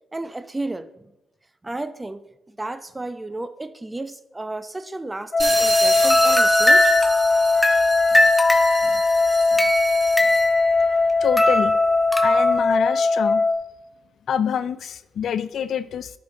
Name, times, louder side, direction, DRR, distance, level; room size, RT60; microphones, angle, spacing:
voice 1, 0.1-0.9 1.6-2.2 2.5-6.9 8.1-8.3 8.8-9.0 9.5-9.7 10.2-10.3, right 2 dB, 20° right, 0.7 m, -33 dB
sound 1, 5.3-13.5, left 3 dB, 25° left, 1.3 m, -20 dB
sound 2, 5.4-10.6, right 2 dB, 35° right, 2.6 m, -29 dB
sound 3, 6.0-11.1 11.4-12.6, left 1 dB, 10° left, 1.1 m, -22 dB
voice 2, 11.2-11.8 12.2-13.4 14.3-16.2, left 8 dB, 65° left, 0.4 m, -26 dB
12.0 x 5.8 x 3.9 m
supercardioid pair, 50°, 0 cm